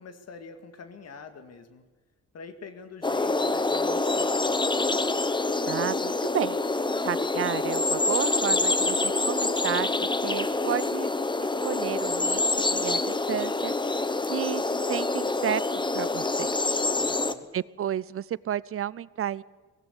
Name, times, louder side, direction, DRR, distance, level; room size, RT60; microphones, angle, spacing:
voice 1, 0.0-1.8 2.3-4.5 17.0-17.5, left 5 dB, 55° left, 8 dB, 2.1 m, -45 dB
sound 1, 3.0-17.3, left 3 dB, 15° left, 1.0 m, -26 dB
voice 2, 5.7-6.6 7.0-9.9 10.2-11.1 11.6-15.6 15.9-16.5 17.5-19.4, right 10 dB, 45° right, 21 dB, 0.6 m, -32 dB
18.0 x 16.0 x 9.9 m, 1.3 s
cardioid pair, 90°, 30 cm